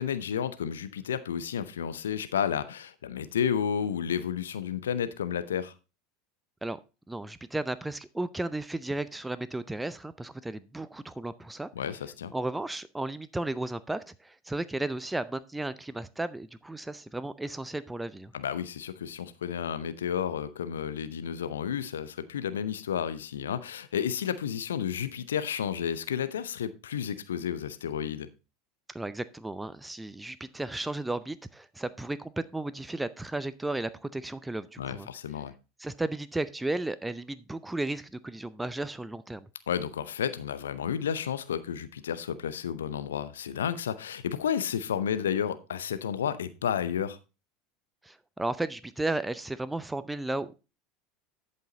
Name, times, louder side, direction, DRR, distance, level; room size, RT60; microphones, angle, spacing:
voice 1, 0.0-5.7 11.7-12.3 18.3-28.3 34.8-35.5 39.7-47.2, left 8 dB, 75° left, 0.7 m, -31 dB
voice 2, 7.1-11.7 12.3-18.3 28.9-35.1 35.8-39.4 48.0-50.6, right 2 dB, 10° right, 0.5 m, -34 dB
11.5 x 5.6 x 4.0 m
figure-of-eight pair, 75°, 0 cm